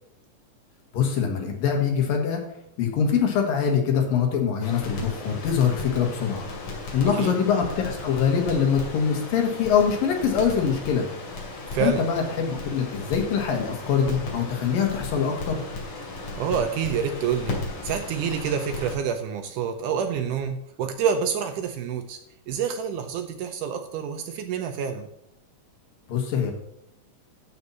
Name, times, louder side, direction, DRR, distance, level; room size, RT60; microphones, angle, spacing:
voice 1, 0.9-2.4 2.8-6.5 6.9-11.1 11.8-15.6 26.1-26.5, left 7 dB, 75° left, 2 dB, 3.4 m, -23 dB
Crackle, 4.6-19.0, left 3 dB, 60° left, 3.9 m, -36 dB
voice 2, 11.7-12.0 16.4-22.2 22.5-25.1, right 7 dB, 75° right, 7 dB, 2.0 m, -27 dB
12.5 x 4.3 x 7.2 m, 0.76 s
omnidirectional pair, 4.1 m